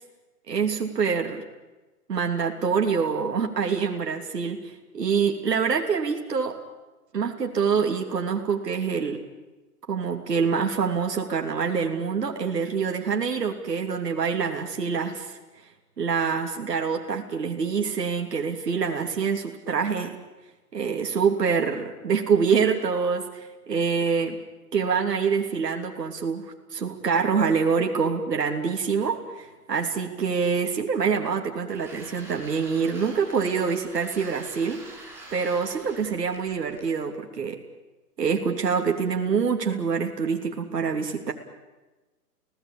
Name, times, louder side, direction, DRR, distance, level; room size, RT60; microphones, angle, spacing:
voice 1, 0.5-1.4 2.1-6.6 7.1-9.2 9.9-15.4 16.0-20.2 20.7-24.3 24.7-34.8 35.3-37.6 38.2-41.3, right 6 dB, 80° right, 3 dB, 3.2 m, -26 dB
sound 1, 31.7-36.9, right 2 dB, 5° right, 6.4 m, -46 dB
30.0 x 17.5 x 8.7 m, 1.2 s
hypercardioid pair, 150°, 47 cm